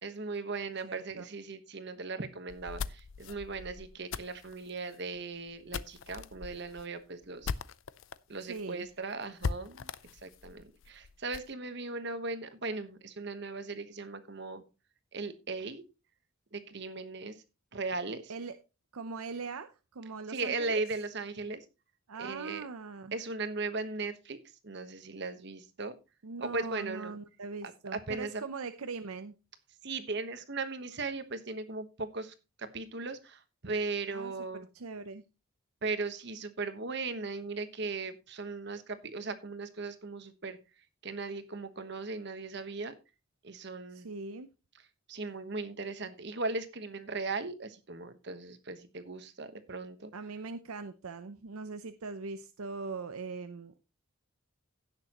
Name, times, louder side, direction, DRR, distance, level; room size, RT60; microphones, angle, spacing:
voice 1, 0.0-7.5 8.3-9.9 10.2-14.6 15.1-15.8 16.5-17.4 17.7-18.3 20.3-21.6 22.2-22.6 23.1-24.4 24.6-25.9 26.4-27.2 27.9-28.4 29.8-34.7 35.8-40.6 41.0-42.9 43.4-44.1 45.1-50.1, right 3 dB, 50° right, 10 dB, 1.2 m, -38 dB
voice 2, 0.8-1.3 8.4-8.9 18.3-18.6 18.9-20.8 22.1-23.1 26.2-29.3 34.1-34.3 34.7-35.2 43.9-44.5 50.1-53.8, right 4 dB, 85° right, 10 dB, 0.7 m, -41 dB
sound 1, 2.5-8.2 8.5-8.6 8.9-9.0 9.4-11.5, left 5 dB, 65° left, 0.5 m, -40 dB
16.5 x 6.7 x 3.0 m, 0.29 s
head